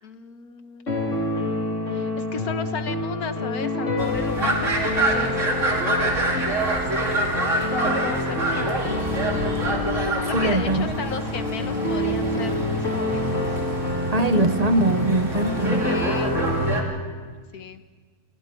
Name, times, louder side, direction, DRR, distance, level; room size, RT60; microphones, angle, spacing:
voice 1, 0.0-0.9 1.9-5.4 5.9-8.8 9.9-13.6 15.7-16.4 17.5-17.8, left 5 dB, 90° left, 8 dB, 1.8 m, -35 dB
sound 1, 0.9-16.8, left 2 dB, 55° left, 3.4 m, -27 dB
sound 2, 4.0-16.8, right 2 dB, 55° right, 3.1 m, -27 dB
voice 2, 10.3-10.9 14.1-15.9, right 2 dB, 30° right, 10 dB, 0.9 m, -22 dB
30.0 x 26.5 x 4.6 m, 1.5 s
omnidirectional pair, 1.5 m